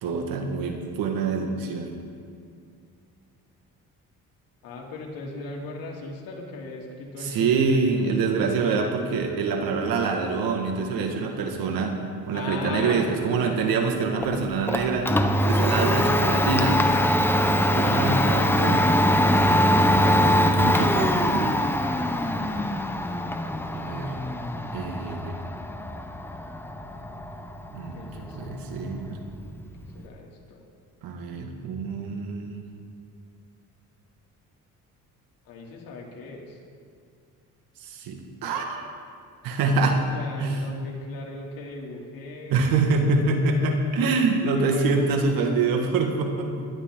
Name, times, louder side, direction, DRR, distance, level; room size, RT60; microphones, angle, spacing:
voice 1, 0.0-1.9 7.2-15.1 15.4-16.8 17.7-18.8 19.9-21.6 23.7-24.2 24.7-25.3 27.7-29.2 31.0-32.6 37.8-38.9 39.4-40.0 40.4-40.6 42.5-46.7, right 4 dB, 85° right, 3 dB, 1.9 m, -25 dB
voice 2, 1.3-1.7 4.6-7.6 8.4-8.5 12.3-13.0 13.4-13.7 15.9-16.0 17.8-19.3 20.0-20.4 27.9-28.5 29.8-30.6 35.4-36.6 39.6-42.7 44.3-45.4, left 3 dB, 80° left, -2 dB, 2.9 m, -38 dB
Domestic sounds home sounds, 14.2-30.1, equal, 5° left, 0.7 m, -23 dB
20.0 x 11.5 x 3.8 m, 2.3 s
cardioid pair, 115°, 34 cm